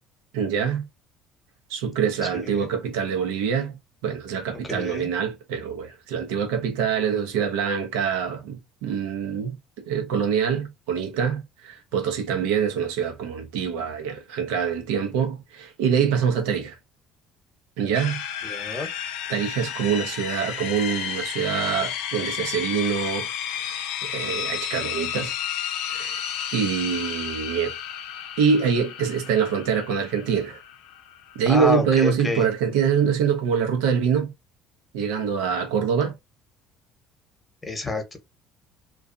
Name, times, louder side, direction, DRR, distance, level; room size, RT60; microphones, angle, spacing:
voice 1, 0.3-0.9 1.7-3.7 4.0-9.6 9.9-16.7 17.8-18.2 19.3-23.3 24.0-25.3 25.9-26.2 26.5-27.7 28.4-30.6 31.4-34.3 34.9-36.1, right 7 dB, 85° right, 0.8 m, -25 dB
voice 2, 4.7-5.1 18.4-18.9 31.5-32.4 37.7-38.2, left 2 dB, 15° left, 1.0 m, -28 dB
sound 1, 17.9-32.0, left 9 dB, 80° left, 0.5 m, -32 dB
2.5 x 2.3 x 2.5 m
supercardioid pair, 80°, 0 cm